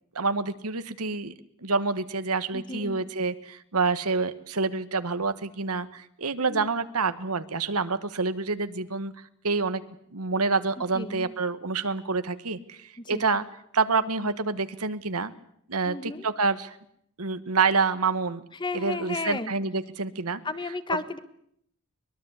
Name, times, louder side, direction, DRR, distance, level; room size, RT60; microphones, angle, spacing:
voice 1, 0.1-1.3 1.6-9.1 9.4-9.8 10.1-13.4 13.7-15.3 15.7-16.8 17.2-18.4 18.7-20.4, right 4 dB, 90° right, 11 dB, 1.5 m, -27 dB
voice 2, 2.5-3.0 6.5-6.7 10.9-11.3 13.0-13.2 15.9-16.2 18.6-19.5 20.4-21.2, left 3 dB, 20° left, 12 dB, 1.4 m, -33 dB
23.0 x 21.5 x 8.3 m, 0.69 s
head